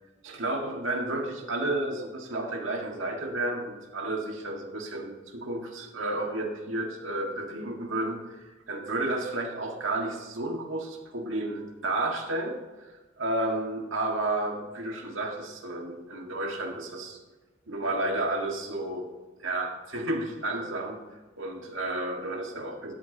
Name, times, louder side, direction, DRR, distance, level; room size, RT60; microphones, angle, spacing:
voice 1, 0.2-17.2 17.7-19.1 19.4-21.0 21.4-22.9, right 2 dB, 75° right, 1 dB, 1.9 m, -32 dB
12.5 x 8.6 x 2.9 m, 1.3 s
head